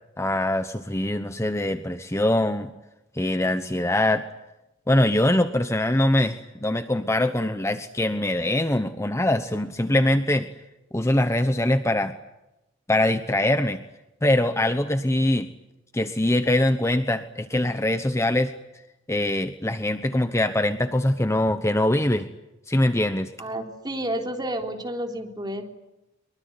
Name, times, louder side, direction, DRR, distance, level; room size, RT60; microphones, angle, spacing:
voice 1, 0.2-2.7 3.1-4.2 4.9-10.5 10.9-12.1 12.9-13.8 14.2-15.5 15.9-18.5 19.1-22.3 22.7-23.3, left 1 dB, 15° left, 9 dB, 1.0 m, -23 dB
voice 2, 23.4-25.6, right 1 dB, 20° right, 3 dB, 3.6 m, -30 dB
24.0 x 23.5 x 9.6 m, 0.93 s
head